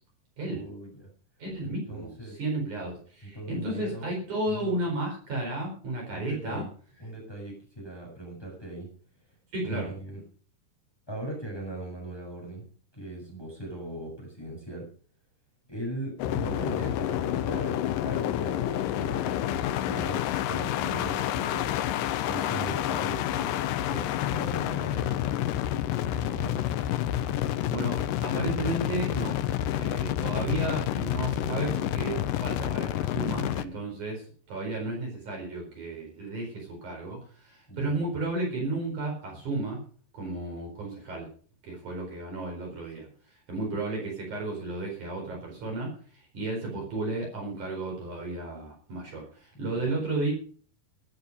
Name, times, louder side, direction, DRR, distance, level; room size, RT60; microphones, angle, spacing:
voice 1, 0.5-1.1 1.6-2.4 3.2-4.1 4.5-4.8 6.1-6.7 7.0-8.9 9.6-10.2 11.1-12.7 13.0-14.9 15.7-21.7 22.2-25.4 25.8-26.6 37.7-37.9 49.5-50.0, right 1 dB, 5° left, -2 dB, 7.0 m, -39 dB
voice 2, 1.4-6.6 9.5-9.9 27.7-29.4 29.8-39.8 40.1-41.3 41.6-43.1 43.5-50.3, right 2 dB, 50° right, -1 dB, 5.8 m, -33 dB
sound 1, 16.2-33.7, left 12 dB, 75° left, 2.2 m, -29 dB
13.5 x 12.0 x 5.4 m, 0.43 s
omnidirectional pair, 4.4 m